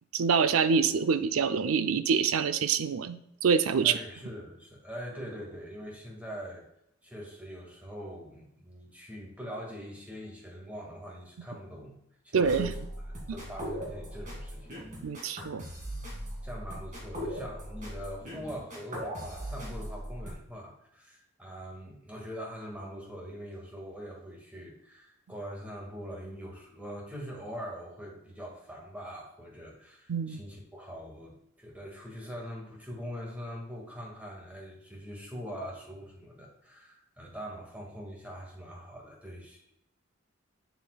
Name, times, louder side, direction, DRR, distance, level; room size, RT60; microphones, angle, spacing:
voice 1, 0.1-4.0 12.3-12.7 15.0-15.6 30.1-30.4, right 6 dB, 90° right, 12 dB, 0.5 m, -26 dB
voice 2, 3.8-6.6 7.0-12.0 12.2-14.7 16.4-39.7, equal, 5° right, -2 dB, 1.8 m, -43 dB
sound 1, 12.4-20.3, equal, 40° right, 2.0 m, -39 dB
7.3 x 6.9 x 2.3 m, 0.77 s
head